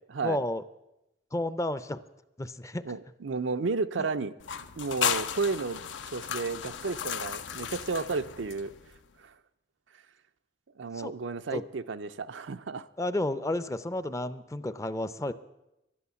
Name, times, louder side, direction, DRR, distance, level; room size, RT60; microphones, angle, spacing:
voice 1, 0.2-0.6 1.3-2.0 2.4-2.8 11.0-11.1 11.5-11.6 13.0-15.3, left 1 dB, 15° left, 14 dB, 0.5 m, -31 dB
voice 2, 2.8-4.3 4.8-5.8 6.1-8.7 9.2-9.3 10.8-12.9, right 4 dB, 80° right, 10 dB, 0.6 m, -32 dB
sound 1, 4.4-9.0, left 8 dB, 70° left, 0.6 m, -34 dB
12.0 x 11.0 x 6.9 m, 0.92 s
head